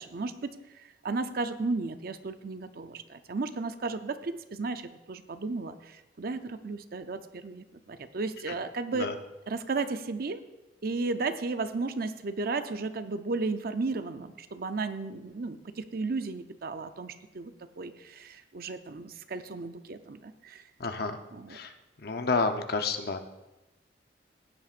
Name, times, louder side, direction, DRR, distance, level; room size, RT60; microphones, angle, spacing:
voice 1, 0.0-9.1 9.5-10.4 10.8-20.6 21.3-21.6, right 3 dB, 60° right, 10 dB, 0.6 m, -34 dB
voice 2, 20.8-21.2 21.5-21.7 22.0-23.2, left 4 dB, 60° left, 7 dB, 0.8 m, -29 dB
16.0 x 10.0 x 2.5 m, 1.0 s
head